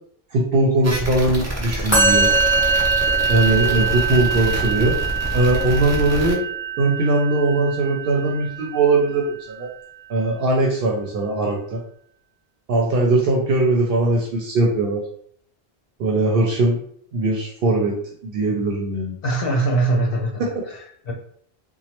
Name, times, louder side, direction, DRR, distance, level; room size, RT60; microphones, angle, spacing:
voice 1, 0.3-2.3 3.3-5.0 5.3-6.5 6.8-9.7 10.1-11.8 12.7-15.0 16.0-16.8 17.1-17.9 18.2-19.1 20.4-20.5, right 2 dB, 70° right, -1 dB, 0.7 m, -20 dB
sound 1, 0.8-6.3, right 1 dB, 25° right, 0.3 m, -27 dB
Musical instrument, 1.9-9.2, right 5 dB, 30° left, 1.1 m, -23 dB
voice 2, 19.2-21.1, right 2 dB, 70° left, 0 dB, 0.9 m, -22 dB
3.0 x 2.2 x 2.9 m, 0.62 s
omnidirectional pair, 1.0 m